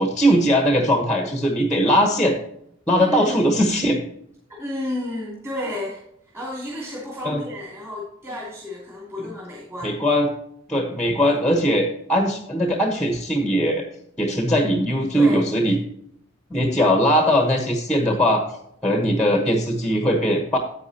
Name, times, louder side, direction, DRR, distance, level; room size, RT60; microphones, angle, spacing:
voice 1, 0.0-2.4 2.9-4.0 7.2-7.4 9.8-10.3 10.7-13.9 14.2-15.8 16.5-18.4 18.8-20.6, equal, 5° left, 3 dB, 1.1 m, -20 dB
voice 2, 3.0-3.4 4.5-6.0 6.3-9.9 15.1-15.5, left 1 dB, 15° right, -5 dB, 2.8 m, -31 dB
10.5 x 8.6 x 2.9 m, 0.72 s
head